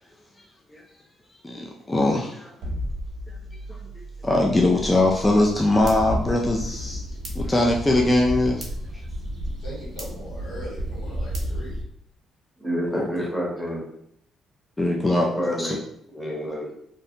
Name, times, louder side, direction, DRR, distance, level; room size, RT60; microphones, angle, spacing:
voice 1, 1.4-2.5 4.0-7.0 7.4-8.6 12.9-13.1 14.8-15.3 15.6-15.8, left 2 dB, 15° left, 0 dB, 0.3 m, -21 dB
sound 1, 2.6-8.8, equal, 70° right, 0.5 m, -37 dB
sound 2, 4.7-11.8, equal, 45° right, 0.9 m, -32 dB
voice 2, 9.6-11.7, equal, 90° left, -7 dB, 1.5 m, -39 dB
voice 3, 12.6-13.9 15.1-15.8 16.1-16.7, equal, ahead, -4 dB, 0.9 m, -28 dB
2.6 x 2.1 x 2.7 m, 0.71 s
cardioid pair, 90°, 0 cm